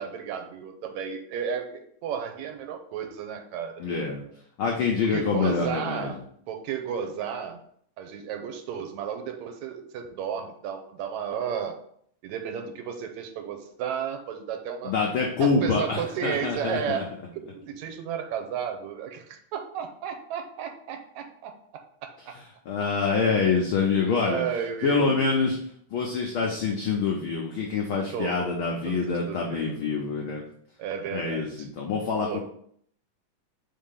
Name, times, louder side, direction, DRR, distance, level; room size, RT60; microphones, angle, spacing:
voice 1, 0.0-3.9 5.1-6.2 6.5-7.6 8.0-11.8 12.2-14.9 15.4-21.6 22.0-22.3 23.3-23.4 24.2-25.3 28.1-28.5 28.9-29.8 30.8-31.7 32.2-32.4, right 8 dB, 80° right, 6 dB, 2.0 m, -33 dB
voice 2, 3.8-4.2 4.6-6.1 14.8-17.0 22.7-24.4 24.8-25.6 25.9-30.4 31.1-32.4, left 4 dB, 80° left, 0 dB, 1.1 m, -26 dB
4.6 x 3.8 x 5.6 m, 0.65 s
omnidirectional pair, 3.4 m